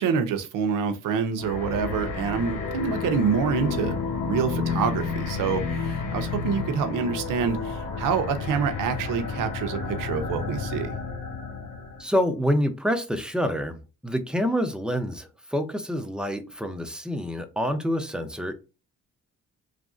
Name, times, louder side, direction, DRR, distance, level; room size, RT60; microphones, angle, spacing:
voice 1, 0.0-4.0 4.2-11.0, right 6 dB, 85° right, 0.6 m, -27 dB
sound 1, 1.4-12.0, left 5 dB, 80° left, 1.0 m, -31 dB
voice 2, 12.0-13.8 14.0-18.5, equal, 5° right, 0.5 m, -27 dB
3.0 x 2.5 x 2.4 m
cardioid pair, 100°, 31 cm